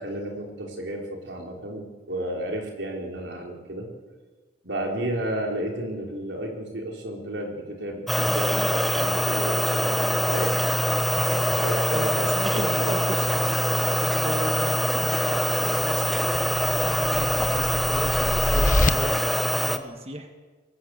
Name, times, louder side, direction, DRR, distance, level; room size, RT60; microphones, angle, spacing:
voice 1, 0.0-3.9 4.6-13.3, right 1 dB, 85° right, 1 dB, 4.6 m, -32 dB
sound 1, 8.1-19.8, equal, ahead, 1.1 m, -24 dB
voice 2, 11.9-20.3, right 1 dB, 35° right, 5 dB, 1.5 m, -36 dB
sound 2, 16.6-18.9, left 2 dB, 45° left, 1.0 m, -26 dB
22.0 x 20.0 x 8.3 m, 1.4 s
head